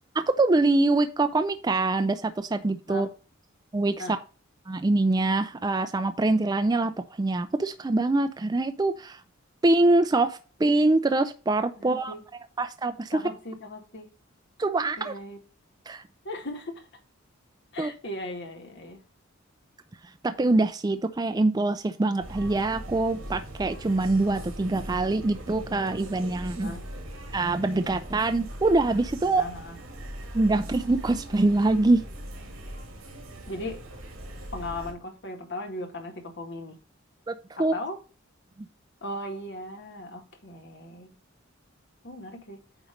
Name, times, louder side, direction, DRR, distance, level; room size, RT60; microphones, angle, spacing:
voice 1, 0.1-3.1 3.7-4.2 4.7-6.9 7.2-9.2 9.6-12.1 12.6-13.2 14.6-15.1 15.9-16.0 17.8-17.9 20.2-26.8 27.3-29.4 30.3-32.0 37.3-37.7, right 2 dB, 20° right, 9 dB, 0.4 m, -24 dB
voice 2, 11.8-12.2 13.1-14.1 15.0-15.4 16.2-16.9 17.7-19.0 26.6-26.9 29.2-29.8 33.5-33.8 34.5-36.8 37.6-38.0 39.0-41.2 42.0-42.6, left 1 dB, 60° left, 3 dB, 1.8 m, -37 dB
sound 1, 22.2-34.9, equal, 75° right, 2.4 m, -40 dB
9.0 x 3.1 x 5.1 m, 0.35 s
head